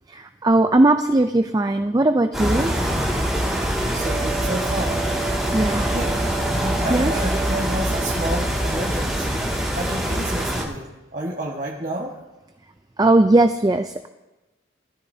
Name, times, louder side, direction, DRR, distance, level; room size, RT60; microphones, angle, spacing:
voice 1, 0.1-2.7 5.5-5.9 6.9-7.1 13.0-14.1, right 2 dB, 20° right, 8 dB, 0.4 m, -18 dB
sound 1, 2.3-10.6, right 1 dB, ahead, 2.1 m, -23 dB
voice 2, 3.9-5.0 5.8-6.2 6.8-12.2, right 1 dB, 40° right, -3 dB, 1.5 m, -30 dB
19.5 x 13.5 x 2.8 m, 1.1 s
head